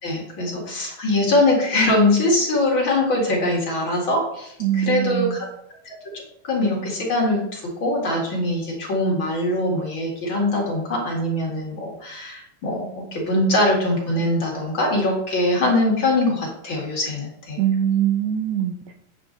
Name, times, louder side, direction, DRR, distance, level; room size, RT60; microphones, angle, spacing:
voice 1, 0.0-5.5 5.8-5.9 6.4-17.6, left 1 dB, 40° left, -2 dB, 2.3 m, -22 dB
voice 2, 4.6-5.4 17.6-18.9, right 10 dB, 75° right, 3 dB, 1.8 m, -22 dB
8.7 x 8.1 x 3.9 m, 0.77 s
omnidirectional pair, 3.8 m